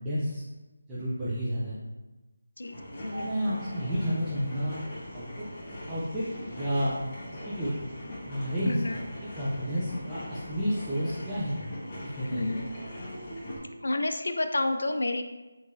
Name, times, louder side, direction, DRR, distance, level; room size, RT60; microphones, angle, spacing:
voice 1, 0.0-0.4 0.9-1.8 3.2-4.8 5.1-5.4 5.9-6.2 6.5-6.9 7.4-7.7 8.2-9.0 9.3-11.6 12.0-12.6, equal, 10° right, -11 dB, 0.6 m, -31 dB
voice 2, 2.6-3.5 8.6-9.0 12.2-12.7 13.8-15.2, left 2 dB, 65° left, 7 dB, 0.4 m, -30 dB
sound 1, 2.6-13.6, equal, 25° left, 1.2 m, -41 dB
Mallet percussion, 3.1-5.4, right 1 dB, 60° right, 1.0 m, -48 dB
5.2 x 3.1 x 2.6 m, 1.1 s
figure-of-eight pair, 160°, 0 cm